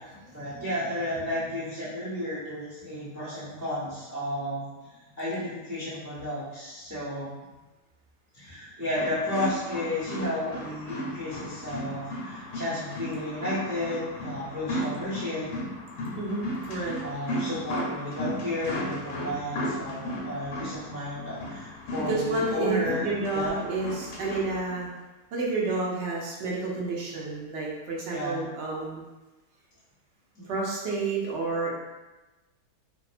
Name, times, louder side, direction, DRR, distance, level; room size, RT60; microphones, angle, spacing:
voice 1, 0.0-7.3 8.3-15.5 16.6-23.6 28.1-28.5 30.3-30.5, left 1 dB, 20° right, -12 dB, 0.6 m, -33 dB
sound 1, 9.0-24.8, equal, 90° left, 1.2 m, -35 dB
voice 2, 16.2-17.0 22.1-24.9 25.3-29.0 30.4-31.7, right 3 dB, 70° right, -3 dB, 0.6 m, -30 dB
2.7 x 2.1 x 2.4 m, 1.1 s
omnidirectional pair, 1.7 m